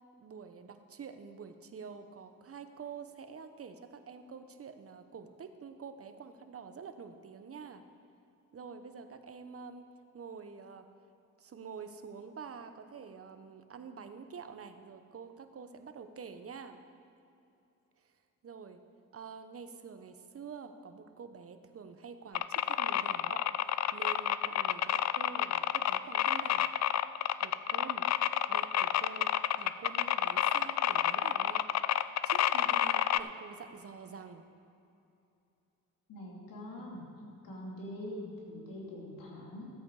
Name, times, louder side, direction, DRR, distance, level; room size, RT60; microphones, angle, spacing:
voice 1, 0.2-7.8 8.5-9.9 10.1-10.9 11.4-16.8 18.0-18.1 18.4-18.8 19.1-26.7 27.4-28.1 28.5-31.7 32.2-34.5, right 6 dB, 45° right, 8 dB, 0.9 m, -47 dB
sound 1, 22.4-33.2, left 11 dB, 55° left, 0.4 m, -29 dB
voice 2, 36.1-37.0 37.4-39.7, left 1 dB, 90° left, -3 dB, 2.7 m, -43 dB
13.5 x 8.4 x 4.8 m, 2.7 s
cardioid pair, 75°, 33 cm